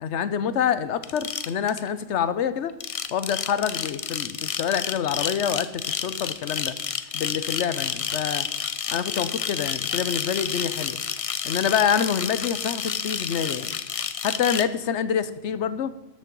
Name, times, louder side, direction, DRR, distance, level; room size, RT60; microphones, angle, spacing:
voice 1, 0.0-2.7 3.1-6.7 7.1-8.4 8.9-11.0 11.4-13.7 14.2-15.9, left 8 dB, 90° left, 14 dB, 1.0 m, -26 dB
sound 1, 1.0-1.9 2.7-14.6, left 6 dB, 45° left, 0.5 m, -30 dB
12.5 x 7.4 x 5.3 m, 1.0 s
omnidirectional pair, 1.1 m